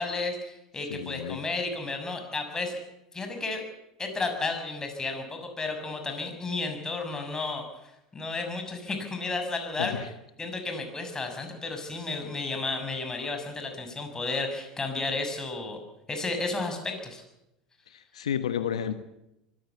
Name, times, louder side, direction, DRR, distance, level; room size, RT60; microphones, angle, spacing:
voice 1, 0.0-2.8 3.1-3.6 4.0-10.0 10.4-15.8 16.1-17.2, left 3 dB, 20° left, 5 dB, 6.5 m, -32 dB
voice 2, 0.9-1.4 9.8-10.1 17.9-18.9, left 8 dB, 80° left, 11 dB, 1.2 m, -31 dB
23.5 x 15.5 x 8.4 m, 0.88 s
hypercardioid pair, 80°, 3 cm